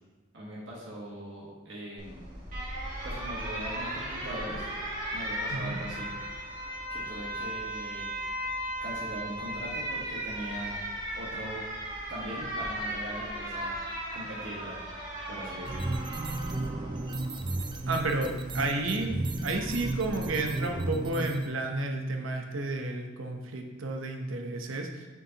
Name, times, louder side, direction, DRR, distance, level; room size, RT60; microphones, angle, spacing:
voice 1, 0.3-2.3 3.0-4.7 5.1-6.1 6.9-8.1 8.8-10.8 11.1-11.6 12.1-13.8 14.1-14.8 15.3-15.9 16.3-16.4, right 1 dB, 65° right, -6 dB, 1.4 m, -40 dB
Alarm, 2.0-19.2, right 1 dB, 40° right, 2.1 m, -37 dB
sound 1, 15.7-21.5, right 2 dB, 25° right, 0.3 m, -33 dB
voice 2, 17.9-19.1 19.4-25.1, right 2 dB, 80° right, 3 dB, 0.8 m, -31 dB
6.9 x 6.2 x 2.9 m, 1.2 s
head